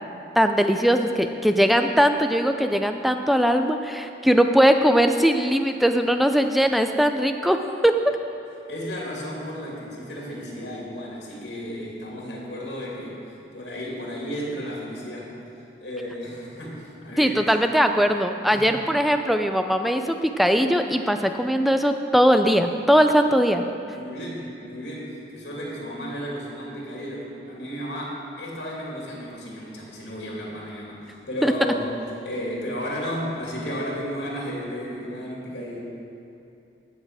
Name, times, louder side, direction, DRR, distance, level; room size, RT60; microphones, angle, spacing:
voice 1, 0.4-7.6 7.8-7.9 17.2-23.6 31.4-31.5, equal, ahead, 6 dB, 0.4 m, -20 dB
voice 2, 8.7-13.2 13.5-15.4 15.8-17.5 18.5-18.8 23.8-35.8, equal, 80° left, -4 dB, 2.7 m, -33 dB
15.5 x 6.6 x 4.8 m, 2.7 s
head